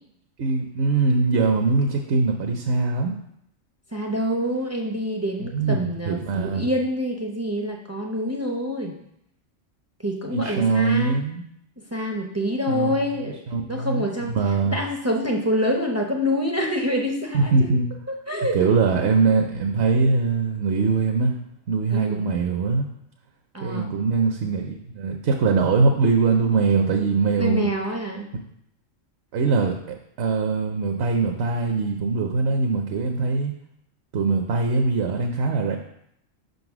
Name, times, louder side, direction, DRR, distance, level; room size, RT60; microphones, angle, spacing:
voice 1, 0.4-3.2 5.4-6.7 10.3-11.4 12.7-13.0 13.5-14.8 17.3-17.9 18.5-21.4 21.7-22.9 23.6-27.7 29.3-33.5 34.1-35.8, right 4 dB, 65° right, 4 dB, 0.8 m, -22 dB
voice 2, 3.9-9.0 10.0-11.1 11.9-13.4 13.7-14.4 14.7-17.5 18.1-18.6 21.9-22.2 23.5-23.9 27.4-28.3, equal, 25° right, 1 dB, 0.3 m, -26 dB
5.2 x 4.0 x 5.9 m, 0.75 s
omnidirectional pair, 1.3 m